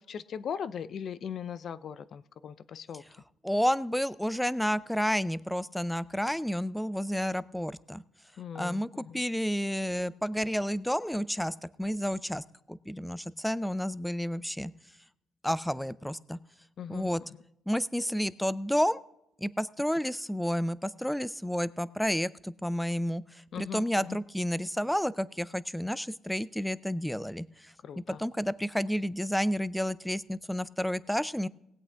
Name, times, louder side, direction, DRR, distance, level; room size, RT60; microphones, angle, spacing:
voice 1, 0.0-3.0 8.4-9.2 16.8-17.4 23.5-24.2 27.8-28.2, left 7 dB, 60° left, 17 dB, 0.5 m, -39 dB
voice 2, 3.4-8.0 8.5-14.7 15.4-16.4 16.9-17.2 17.7-19.0 19.4-23.2 23.6-27.5 28.1-31.5, equal, 5° left, 18 dB, 0.4 m, -30 dB
18.5 x 8.4 x 3.5 m, 0.82 s
cardioid pair, 90°, 0 cm